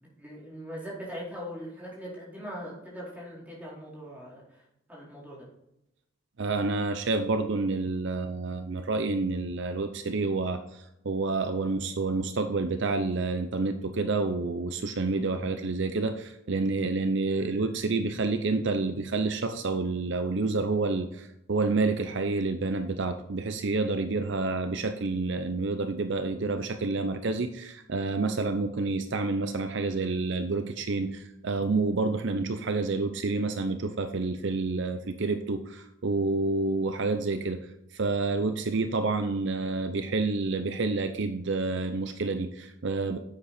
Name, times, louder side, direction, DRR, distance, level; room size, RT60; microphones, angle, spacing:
voice 1, 0.2-5.5, equal, 10° right, -6 dB, 4.2 m, -41 dB
voice 2, 6.4-43.2, right 3 dB, 60° right, 8 dB, 0.6 m, -29 dB
10.5 x 8.0 x 4.3 m, 0.85 s
head